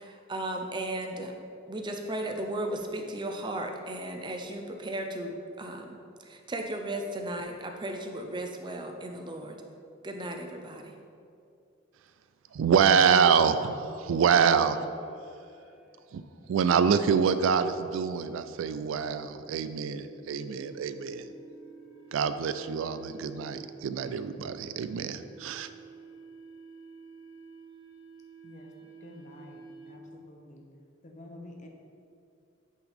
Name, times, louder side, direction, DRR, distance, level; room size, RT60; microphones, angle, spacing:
voice 1, 0.0-1.3 1.7-9.5 10.0-10.9, right 1 dB, 25° right, 3 dB, 0.5 m, -35 dB
voice 2, 12.5-14.8 16.1-16.2 16.5-21.3 22.1-25.7, right 6 dB, 85° right, 11 dB, 0.3 m, -26 dB
sound 1, 14.3-30.2, right 3 dB, 80° left, 0.9 m, -51 dB
voice 3, 29.0-30.6 31.0-31.7, left 1 dB, 40° left, 2 dB, 0.7 m, -49 dB
8.5 x 3.9 x 3.5 m, 2.5 s
head